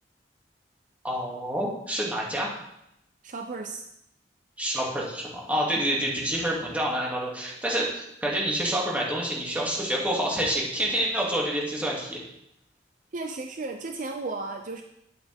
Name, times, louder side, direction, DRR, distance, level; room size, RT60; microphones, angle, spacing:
voice 1, 1.0-2.5 4.6-12.2, right 1 dB, 10° right, -4 dB, 2.3 m, -28 dB
voice 2, 3.2-3.9 5.7-5.8 13.1-14.8, right 3 dB, 45° right, 5 dB, 0.6 m, -34 dB
10.5 x 8.0 x 3.5 m, 0.80 s
head